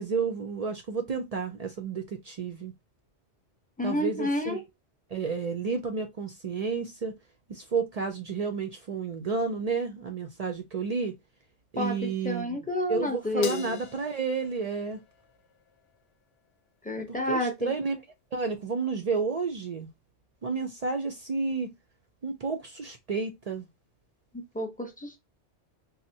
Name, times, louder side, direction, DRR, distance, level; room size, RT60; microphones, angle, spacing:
voice 1, 0.0-2.7 3.8-4.6 5.1-7.1 7.5-11.1 11.7-12.6 12.9-15.0 17.0-18.0 18.3-19.9 20.4-21.7 22.2-23.7, right 5 dB, 55° right, 0.4 m, -31 dB
voice 2, 3.8-4.6 11.8-13.8 16.8-17.7 24.5-25.2, left 1 dB, 10° left, 0.5 m, -30 dB
Crash cymbal, 13.4-16.0, left 7 dB, 70° left, 0.8 m, -43 dB
4.1 x 2.1 x 2.7 m
omnidirectional pair, 1.1 m